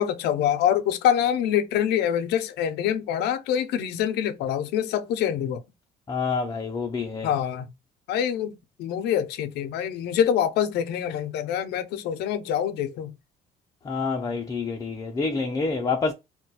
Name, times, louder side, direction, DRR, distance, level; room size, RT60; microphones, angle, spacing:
voice 1, 0.0-5.6 7.2-7.7 8.1-13.1, left 9 dB, 80° left, 0.5 m, -25 dB
voice 2, 6.1-7.3 13.9-16.1, left 4 dB, 20° left, 0.4 m, -27 dB
2.3 x 2.2 x 3.9 m
cardioid pair, 110°, 17 cm